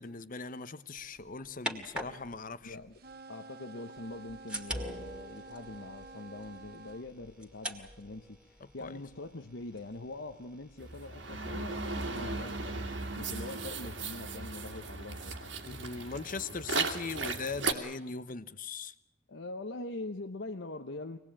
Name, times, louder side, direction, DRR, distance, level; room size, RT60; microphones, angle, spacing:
voice 1, 0.0-2.8 8.8-8.9 12.1-12.5 15.6-18.9, left 4 dB, 45° left, 1.0 m, -40 dB
sound 1, 1.0-3.2 4.0-13.1, equal, 5° right, 2.1 m, -45 dB
voice 2, 2.6-3.0 3.3-15.5 19.3-21.2, left 2 dB, 70° left, 1.0 m, -43 dB
sound 2, 2.9-7.1, right 3 dB, 55° right, 1.1 m, -50 dB
sound 3, 10.8-17.7, right 3 dB, 75° right, 2.5 m, -36 dB
25.0 x 19.0 x 8.8 m
head